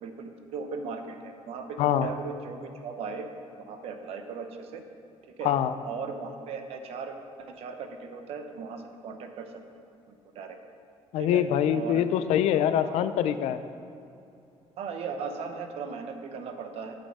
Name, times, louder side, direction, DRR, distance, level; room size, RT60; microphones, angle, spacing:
voice 1, 0.0-3.3 3.6-4.8 5.4-5.5 5.8-7.1 7.5-9.5 10.1-10.6 11.2-11.4 11.7-12.0 12.8-13.0 14.8-16.9, right 5 dB, 65° right, 6 dB, 0.8 m, -37 dB
voice 2, 1.8-2.1 5.4-5.7 11.1-13.6, left 10 dB, 75° left, 12 dB, 0.4 m, -24 dB
8.3 x 6.3 x 5.5 m, 2.7 s
cardioid pair, 170°, 11 cm